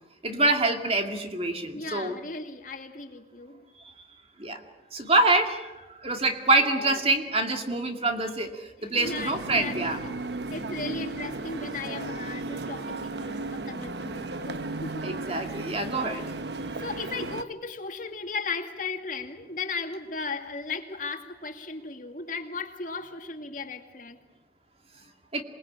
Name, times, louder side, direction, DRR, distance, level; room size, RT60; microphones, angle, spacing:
voice 1, 0.2-2.2 4.4-4.6 4.9-10.0 15.0-16.2 25.3-25.4, right 2 dB, 35° right, 5 dB, 2.3 m, -26 dB
voice 2, 1.7-3.6 6.6-7.0 8.9-10.2 10.5-16.3 16.8-24.2, left 4 dB, 45° left, 5 dB, 2.4 m, -36 dB
sound 1, 9.0-17.4, right 2 dB, 70° right, 1.1 m, -35 dB
27.0 x 20.5 x 8.8 m, 1.1 s
head